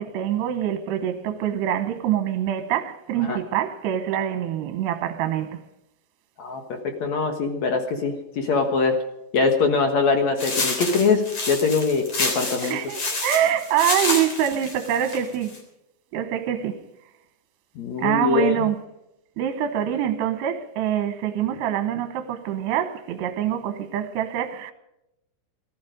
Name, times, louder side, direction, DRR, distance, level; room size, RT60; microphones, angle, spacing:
voice 1, 0.0-5.6 12.6-15.6 16.1-16.8 18.0-18.8 19.4-24.7, right 10 dB, 80° right, 3.1 m, -25 dB
voice 2, 6.4-9.0 9.3-12.8 17.8-18.7, left 4 dB, 60° left, 2.0 m, -23 dB
sound 1, 10.4-15.6, left 2 dB, 35° left, 4.3 m, -28 dB
19.0 x 13.5 x 5.1 m
omnidirectional pair, 4.9 m